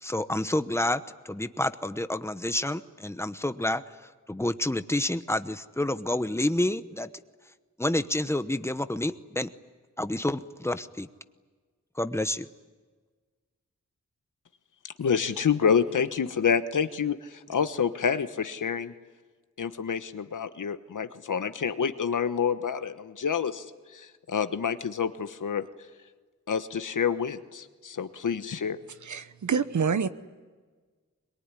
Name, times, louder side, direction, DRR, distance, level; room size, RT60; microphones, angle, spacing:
voice 1, 0.0-7.1 7.8-9.5 10.0-11.1 12.0-12.5, left 1 dB, 10° left, 11 dB, 1.0 m, -29 dB
voice 2, 15.0-18.9 19.6-23.6 23.9-25.7 26.5-28.8, left 7 dB, 85° left, 10 dB, 1.3 m, -28 dB
voice 3, 29.0-30.1, right 6 dB, 75° right, 12 dB, 1.1 m, -27 dB
22.5 x 22.5 x 9.9 m, 1.4 s
wide cardioid pair, 105°, 30 cm